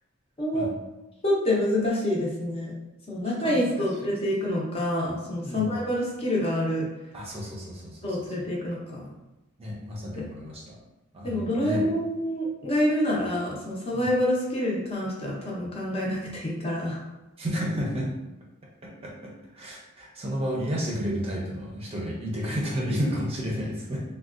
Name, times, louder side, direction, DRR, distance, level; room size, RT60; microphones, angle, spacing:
voice 1, 1.2-2.7 3.1-6.9 8.0-9.1 10.2-10.3 11.2-17.0, left 1 dB, 30° left, -4 dB, 0.6 m, -27 dB
voice 2, 3.4-3.9 5.4-5.8 7.1-8.2 9.6-10.8 11.1-11.9 13.9-14.1 17.4-18.1 18.8-24.0, equal, 30° right, -3 dB, 0.5 m, -31 dB
3.5 x 2.2 x 2.4 m, 1.0 s
head